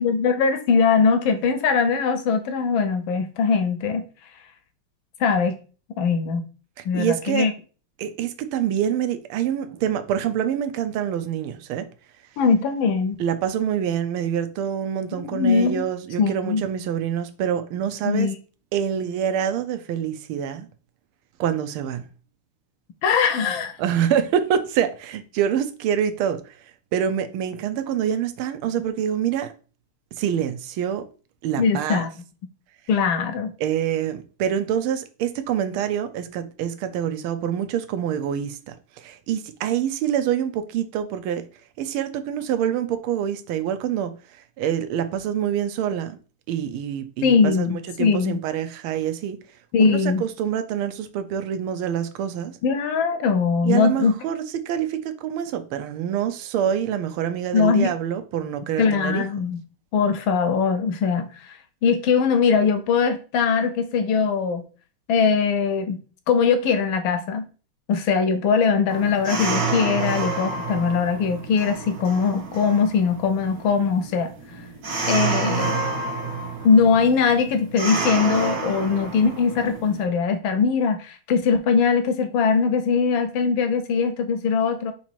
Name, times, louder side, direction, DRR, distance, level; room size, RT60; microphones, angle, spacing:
voice 1, 0.0-4.0 5.2-5.6 6.0-6.4 6.8-7.5 12.4-13.2 15.2-15.8 16.2-16.6 18.0-18.4 23.0-23.7 31.6-32.1 32.9-33.5 47.2-48.4 49.7-50.2 52.6-54.2 57.5-57.9 58.8-59.6 59.9-64.6 65.1-66.0 66.3-67.5 67.9-74.3 75.1-75.9 76.6-84.9, left 5 dB, 75° left, 1.3 m, -21 dB
voice 2, 6.8-7.5 8.0-11.9 13.2-18.3 18.7-20.7 21.4-22.0 23.8-26.4 26.9-29.5 30.2-31.0 31.4-32.0 33.6-41.4 41.8-44.1 44.6-46.2 46.5-49.4 49.8-52.5 53.6-59.2, right 9 dB, 85° right, 1.5 m, -26 dB
sound 1, 68.9-80.0, right 4 dB, 50° right, 1.3 m, -29 dB
4.0 x 3.0 x 4.4 m
omnidirectional pair, 2.4 m